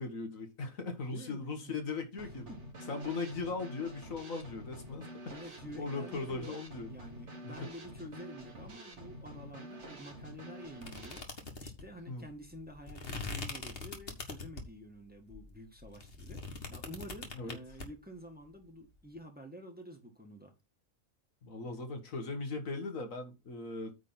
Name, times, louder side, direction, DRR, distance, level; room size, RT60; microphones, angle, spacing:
voice 1, 0.0-2.5 2.9-5.4 5.7-6.9 7.4-7.7 12.1-12.3 17.3-17.6 21.4-24.0, left 3 dB, 75° left, 1.9 m, -39 dB
voice 2, 1.0-1.8 2.5-2.6 5.3-20.5, equal, 5° right, 1.7 m, -49 dB
Drum kit / Snare drum, 2.2-11.2, right 1 dB, 55° right, 2.5 m, -48 dB
sound 1, 10.8-14.8 15.3-17.9, left 3 dB, 45° left, 1.8 m, -42 dB
9.1 x 3.7 x 5.7 m
omnidirectional pair, 1.4 m